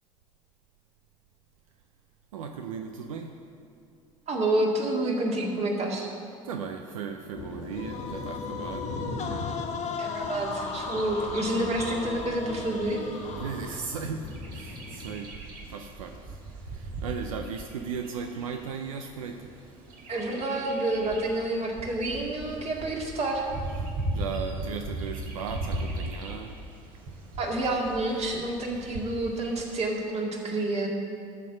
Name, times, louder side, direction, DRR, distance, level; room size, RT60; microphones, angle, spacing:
voice 1, 2.3-3.4 6.5-8.9 13.4-15.4 15.6-16.4 16.7-19.5 24.1-26.6, right 6 dB, 85° right, 5 dB, 0.5 m, -36 dB
voice 2, 4.3-6.1 10.0-13.0 20.1-23.5 27.4-30.9, right 1 dB, 40° right, 0 dB, 2.1 m, -28 dB
sound 1, 7.3-15.2, left 2 dB, 65° left, 1.5 m, -40 dB
sound 2, 7.7-14.0, left 5 dB, 45° left, 1.4 m, -36 dB
Bird vocalization bird call bird song, 10.4-29.7, right 1 dB, 60° right, 1.9 m, -39 dB
12.5 x 4.5 x 6.9 m, 2.4 s
hypercardioid pair, 70°, 17 cm